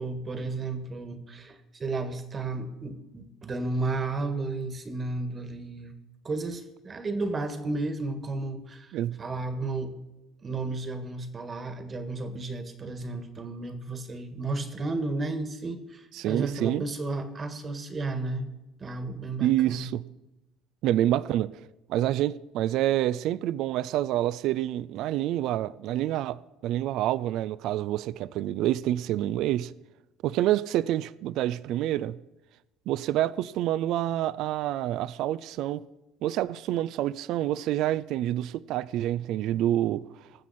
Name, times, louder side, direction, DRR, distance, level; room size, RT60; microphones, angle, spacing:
voice 1, 0.0-5.9 6.2-9.9 10.4-18.5 18.8-19.9, right 3 dB, 30° right, 1.5 m, -33 dB
voice 2, 16.1-16.8 19.4-20.0 20.8-21.5 21.9-29.7 30.2-32.2 32.9-35.8 36.2-40.0, right 13 dB, 65° right, 0.3 m, -27 dB
18.5 x 7.3 x 4.2 m
supercardioid pair, 95°, 0 cm